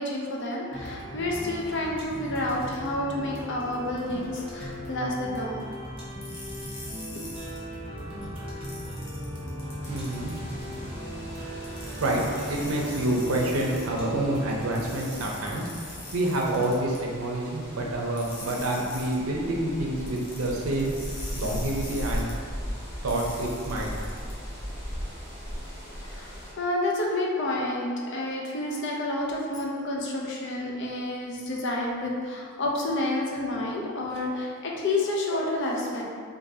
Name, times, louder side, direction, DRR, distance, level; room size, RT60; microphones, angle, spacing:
voice 1, 0.0-5.6 7.1-7.2 10.1-10.2 10.7-11.0 12.7-12.8 24.4-24.5 26.0-36.0, left 1 dB, 60° left, -2 dB, 0.5 m, -30 dB
sound 1, 0.7-16.0, equal, 25° right, 0.7 m, -38 dB
sound 2, 6.2-7.6 8.6-10.3 11.6-13.9 14.8-17.0 18.2-19.2 20.1-22.3 23.1-24.3, left 2 dB, 90° left, 0.9 m, -43 dB
voice 2, 9.6-10.3 11.7-20.9 21.3-22.4 23.0-23.9, right 1 dB, 90° right, -1 dB, 0.6 m, -28 dB
sound 3, 9.8-26.5, equal, 15° left, 0.8 m, -39 dB
3.7 x 2.6 x 2.7 m, 2.1 s
head